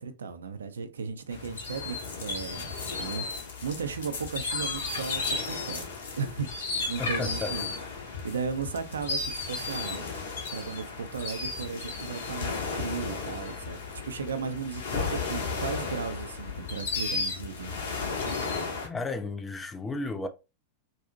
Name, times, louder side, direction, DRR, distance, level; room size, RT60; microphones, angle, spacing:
voice 1, 0.0-5.9 6.2-10.1 10.5-17.8, right 5 dB, 70° right, 0.3 m, -36 dB
sound 1, 1.3-18.9, left 4 dB, 60° left, 0.6 m, -34 dB
voice 2, 7.0-7.6 18.8-20.3, left 3 dB, 15° left, 0.3 m, -33 dB
2.6 x 2.0 x 2.5 m
figure-of-eight pair, 90°, 0 cm